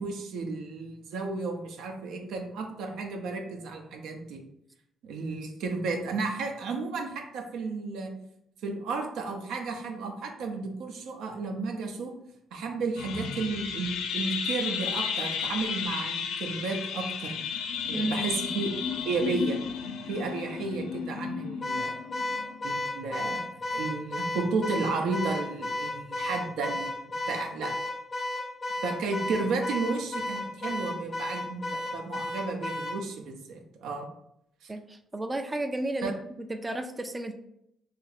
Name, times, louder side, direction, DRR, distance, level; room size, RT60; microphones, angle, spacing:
voice 1, 0.0-4.4 5.0-8.1 8.6-12.1 12.5-17.3 17.8-18.7 19.1-19.6 20.1-21.9 22.6-23.4 23.7-27.7 28.8-34.1 34.6-34.7 36.0-36.1, right 4 dB, 85° right, 3 dB, 0.6 m, -33 dB
sound 1, 13.0-22.6, left 7 dB, 85° left, 0.3 m, -33 dB
voice 2, 17.9-18.3 34.7-36.1 36.5-37.3, right 1 dB, 20° right, 6 dB, 0.3 m, -32 dB
Car / Alarm, 21.6-33.0, left 2 dB, 35° left, 0.5 m, -33 dB
2.8 x 2.5 x 4.0 m, 0.76 s
cardioid pair, 90°, 0 cm